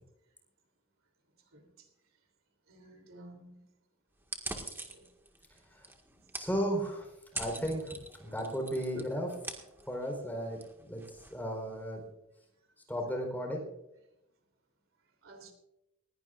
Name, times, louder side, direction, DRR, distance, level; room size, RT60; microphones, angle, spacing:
voice 1, 1.5-1.9 2.7-3.7 4.7-5.1 6.1-6.3 8.2-8.3 15.2-15.5, right 2 dB, 70° right, 4 dB, 3.2 m, -54 dB
sound 1, 4.2-12.0, right 2 dB, 10° right, 1.8 m, -45 dB
voice 2, 6.3-9.4 9.9-12.1 12.9-13.7, equal, 10° left, 1 dB, 4.1 m, -35 dB
20.5 x 17.0 x 2.5 m, 0.86 s
head